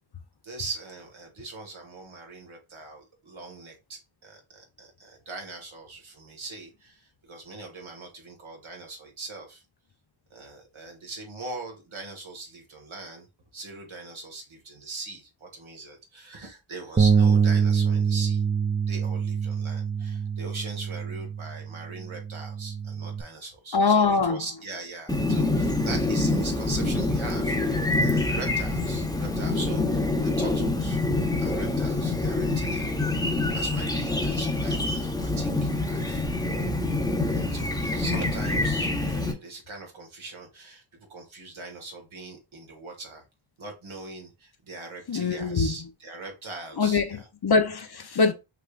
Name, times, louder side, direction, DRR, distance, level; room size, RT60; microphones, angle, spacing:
voice 1, 0.4-9.6 10.3-13.3 13.5-18.4 18.9-31.0 31.4-32.9 33.5-36.2 37.3-40.8 41.1-43.2 43.6-47.3, right 3 dB, 75° right, 1.9 m, -41 dB
Bass guitar, 17.0-23.2, right 6 dB, 20° right, 0.5 m, -25 dB
voice 2, 23.7-24.4 45.1-45.7 46.8-48.3, left 4 dB, 50° left, 0.9 m, -23 dB
Chirp tweet, 25.1-39.3, left 2 dB, 10° left, 1.0 m, -26 dB
6.0 x 3.5 x 2.5 m
wide cardioid pair, 65°, 49 cm